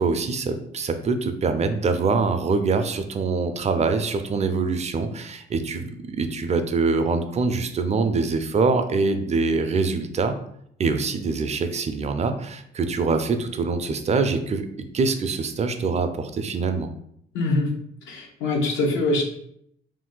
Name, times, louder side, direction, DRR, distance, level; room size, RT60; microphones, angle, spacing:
voice 1, 0.0-10.4 10.8-16.9, right 4 dB, 35° right, 8 dB, 0.4 m, -24 dB
voice 2, 17.3-17.7 18.1-19.2, left 2 dB, 80° left, 0 dB, 0.8 m, -23 dB
2.6 x 2.2 x 3.7 m, 0.71 s
cardioid pair, 90°, 20 cm